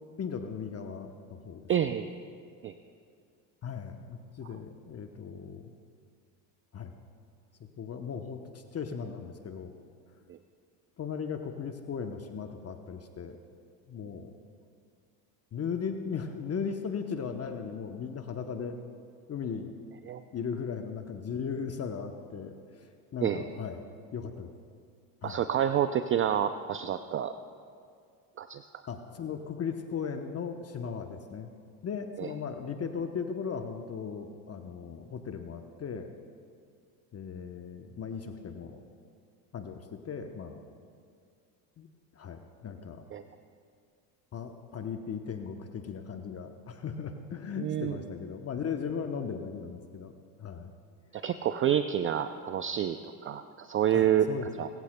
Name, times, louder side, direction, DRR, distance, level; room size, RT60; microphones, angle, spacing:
voice 1, 0.2-1.9 3.6-5.7 6.7-6.9 7.8-9.7 11.0-13.4 13.9-14.3 15.5-18.8 19.3-19.7 20.3-23.9 24.1-24.5 25.2-25.4 28.9-31.5 31.8-36.1 37.1-38.8 39.5-40.6 41.8-41.9 42.1-43.0 44.3-50.1 50.4-50.7 53.9-54.7, left 6 dB, 30° left, 6 dB, 0.8 m, -37 dB
voice 2, 1.7-2.1 2.6-2.7 10.3-10.4 20.1-20.2 23.2-23.4 25.2-27.3 28.4-28.7 32.2-32.3 43.1-43.2 47.6-48.0 51.1-53.0 53.2-54.3 54.6-54.7, right 10 dB, 30° right, 10 dB, 0.4 m, -28 dB
21.5 x 15.0 x 2.2 m, 2.2 s
hypercardioid pair, 85°, 49 cm